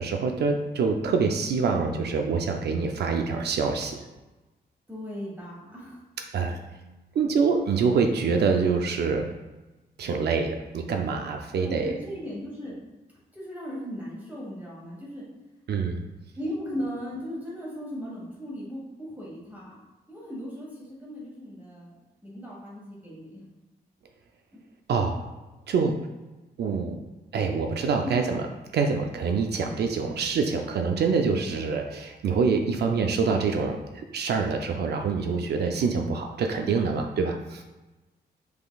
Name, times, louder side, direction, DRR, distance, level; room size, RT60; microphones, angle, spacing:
voice 1, 0.0-4.0 6.3-6.6 7.1-9.4 10.0-12.0 15.7-16.0 24.9-25.2 25.7-26.0 26.6-27.0 27.3-28.5 28.7-37.6, right 5 dB, 75° right, 4 dB, 0.4 m, -25 dB
voice 2, 4.9-6.0 11.6-12.8 13.3-15.2 16.3-19.7 20.1-21.9 22.2-23.4 24.5-24.6 28.0-28.2 30.6-30.9 32.8-33.1, equal, 10° right, -7 dB, 1.3 m, -37 dB
5.6 x 3.8 x 2.3 m, 1.1 s
cardioid pair, 105°, 17 cm